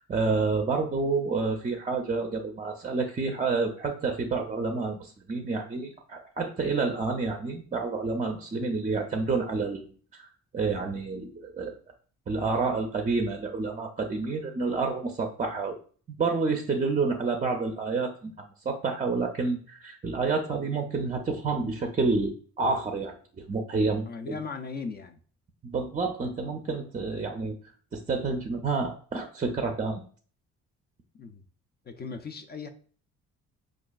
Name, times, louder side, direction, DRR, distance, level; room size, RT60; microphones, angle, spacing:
voice 1, 0.0-10.3 10.5-11.7 12.3-15.7 16.2-18.3 18.7-24.4 25.6-27.6 27.9-30.0, right 4 dB, 25° right, 4 dB, 0.5 m, -29 dB
voice 2, 24.1-25.2 31.2-31.4 31.9-32.7, left 5 dB, 35° left, 8 dB, 0.4 m, -38 dB
4.8 x 2.4 x 2.3 m, 0.43 s
cardioid pair, 90°, 30 cm